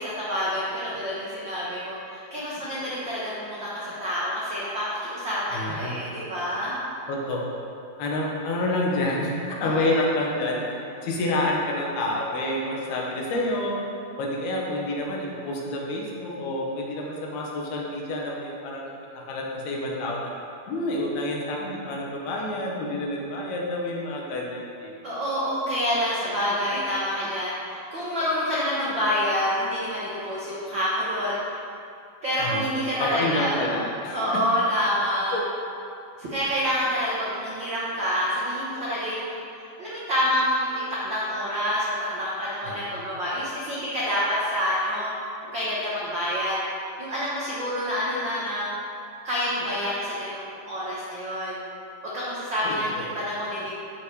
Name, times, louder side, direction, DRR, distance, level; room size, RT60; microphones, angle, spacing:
voice 1, 0.0-6.8 9.7-10.0 25.0-31.6 32.2-33.9 34.1-35.4 36.2-39.4 39.8-45.1 45.4-46.6 47.0-48.7 49.2-51.6 52.1-53.7, equal, 80° right, -7 dB, 1.0 m, -27 dB
voice 2, 5.5-6.0 7.1-7.6 8.0-10.6 11.0-13.8 14.2-18.9 19.3-20.3 20.7-25.2 32.4-32.7 33.0-34.2 35.3-35.4 42.6-42.8 52.6-53.2, left 1 dB, 80° left, -2 dB, 3.2 m, -28 dB
12.0 x 5.6 x 4.8 m, 2.6 s
omnidirectional pair, 4.4 m